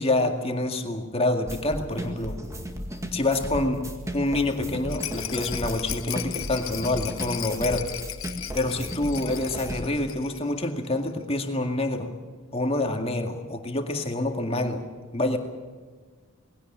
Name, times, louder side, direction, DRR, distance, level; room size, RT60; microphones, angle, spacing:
voice 1, 0.0-2.4 3.1-3.8 4.1-7.9 8.5-12.1 12.5-14.8 15.1-15.4, left 2 dB, 30° left, 5 dB, 2.0 m, -27 dB
sound 1, 1.5-9.8, equal, 15° right, 2.0 m, -35 dB
Rattle, 4.9-10.6 10.8-10.9 11.2-11.3, left 12 dB, 65° left, 1.1 m, -36 dB
20.5 x 17.0 x 8.9 m, 1.5 s
head